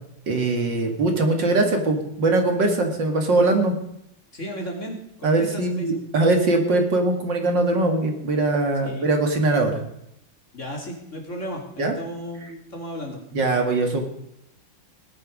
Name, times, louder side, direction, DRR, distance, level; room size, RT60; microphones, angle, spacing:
voice 1, 0.3-3.7 5.2-9.8 11.8-11.9 13.3-14.0, right 2 dB, 55° right, 4 dB, 2.6 m, -21 dB
voice 2, 4.3-5.9 8.8-9.1 10.5-13.2, equal, 35° left, 1 dB, 3.1 m, -34 dB
19.0 x 10.5 x 5.2 m, 0.76 s
omnidirectional pair, 2.3 m